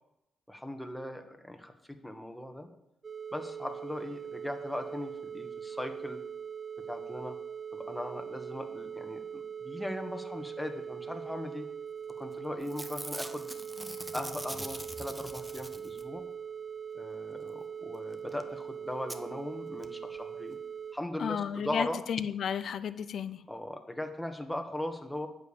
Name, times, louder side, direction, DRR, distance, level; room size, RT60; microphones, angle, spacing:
voice 1, 0.5-2.7 3.3-6.2 6.9-7.4 7.7-11.7 12.2-13.5 14.1-16.2 16.9-20.6 20.9-22.0 23.5-25.3, left 1 dB, 5° left, 6 dB, 1.8 m, -39 dB
sound 1, 3.0-20.9, right 7 dB, 40° right, 0.7 m, -41 dB
Packing tape duct tape / Tearing, 12.1-12.3 12.6-16.2 18.1-18.2 18.4-18.5 19.1-19.2 19.8-19.9 20.1-20.2, right 1 dB, 10° right, 1.1 m, -43 dB
voice 2, 21.2-23.4, left 8 dB, 60° left, 14 dB, 0.7 m, -33 dB
9.1 x 7.0 x 7.2 m, 0.84 s
hypercardioid pair, 40°, 0 cm